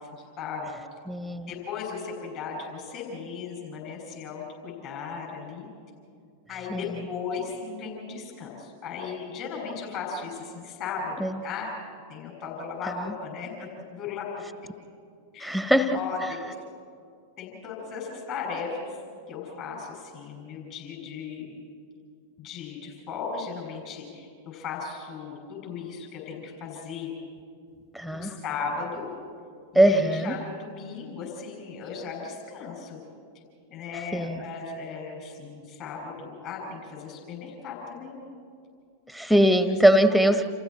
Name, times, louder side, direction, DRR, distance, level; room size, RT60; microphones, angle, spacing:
voice 1, 0.1-0.7 1.5-5.7 6.5-11.7 12.1-14.3 15.3-15.6 15.9-16.5 17.4-18.9 19.3-21.5 22.4-27.1 28.1-29.1 29.7-33.0 33.7-38.3 39.3-39.4 40.1-40.3, left 5 dB, 40° left, 0 dB, 6.4 m, -36 dB
voice 2, 1.1-1.5 6.7-6.9 11.2-11.4 15.4-16.0 27.9-28.3 29.7-30.3 34.1-34.4 39.1-40.5, right 1 dB, ahead, 10 dB, 1.4 m, -21 dB
29.5 x 28.5 x 4.4 m, 2.2 s
figure-of-eight pair, 90°, 0 cm